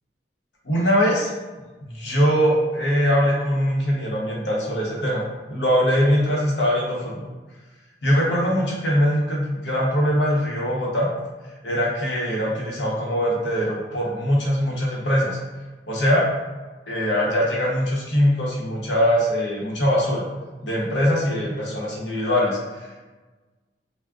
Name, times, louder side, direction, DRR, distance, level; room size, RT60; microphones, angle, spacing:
voice 1, 0.6-1.3 1.8-5.2 5.5-7.2 8.0-11.1 11.6-15.4 15.9-16.2 16.9-20.2 20.6-23.0, equal, 90° left, -3 dB, 0.8 m, -22 dB
3.5 x 2.0 x 2.3 m, 1.2 s
head